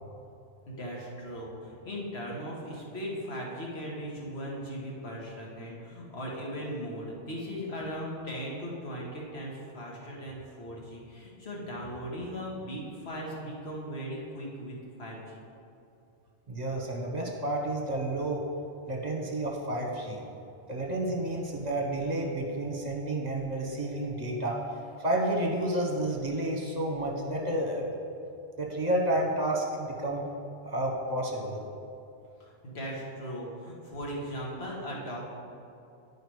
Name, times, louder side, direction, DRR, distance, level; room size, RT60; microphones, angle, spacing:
voice 1, 0.7-15.4 32.4-35.3, equal, 85° left, -3 dB, 1.7 m, -38 dB
voice 2, 16.5-18.4 18.9-20.2 20.7-24.6 25.0-27.9 28.6-30.2 30.6-31.6, right 1 dB, 45° right, -1 dB, 1.1 m, -30 dB
10.0 x 4.9 x 4.7 m, 2.6 s
omnidirectional pair, 1.0 m